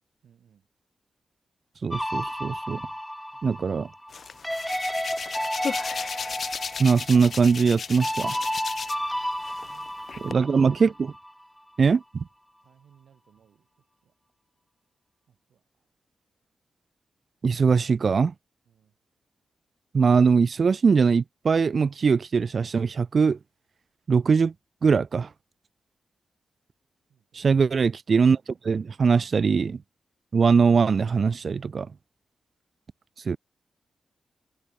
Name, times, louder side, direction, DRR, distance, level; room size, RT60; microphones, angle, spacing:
voice 1, 0.2-0.7 3.3-3.7 9.1-9.2 9.5-10.7 12.6-14.1 15.3-16.0 18.6-19.0 27.1-27.6, right 8 dB, 85° right, 5.7 m, -62 dB
voice 2, 1.8-2.8 3.4-3.9 6.8-8.4 10.2-11.1 11.8-12.2 17.4-18.3 19.9-23.4 24.1-24.5 24.8-25.3 27.3-29.8 30.3-31.9 33.3-33.4, right 5 dB, 45° right, 0.4 m, -21 dB
sound 1, 1.9-11.3, equal, 5° left, 0.7 m, -32 dB
Hands, 4.1-9.1 9.4-10.3, left 6 dB, 50° left, 0.5 m, -35 dB
wide cardioid pair, 140°, 0 cm